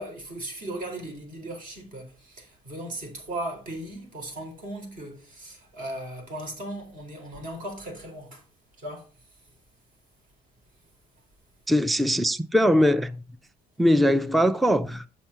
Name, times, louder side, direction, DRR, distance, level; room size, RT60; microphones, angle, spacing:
voice 1, 0.0-8.4 8.8-9.1, right 1 dB, 55° right, 4.0 m, -37 dB
voice 2, 11.7-13.2 13.8-15.1, equal, ahead, 0.4 m, -21 dB
7.3 x 5.9 x 5.6 m
cardioid pair, 110°, 17 cm